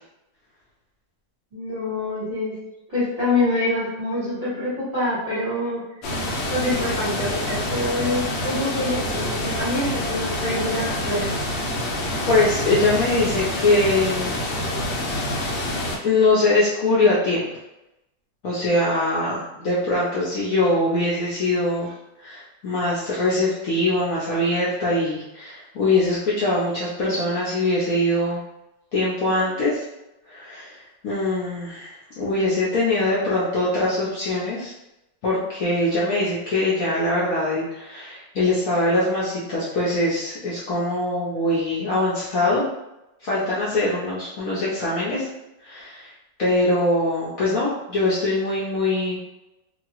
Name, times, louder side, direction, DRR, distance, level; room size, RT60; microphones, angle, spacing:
voice 1, 1.5-2.5 2.9-5.8 6.5-11.3, left 2 dB, 25° right, -10 dB, 1.0 m, -25 dB
sound 1, 6.0-16.0, left 1 dB, 85° left, 1.3 m, -27 dB
voice 2, 12.3-14.4 15.1-15.5 16.0-17.5 18.4-21.9 22.2-28.4 28.9-29.8 30.3-34.7 35.2-42.6 43.2-45.3 45.6-46.1 46.4-49.2, left 2 dB, 60° left, -8 dB, 0.9 m, -22 dB
2.9 x 2.6 x 2.9 m, 0.92 s
omnidirectional pair, 2.0 m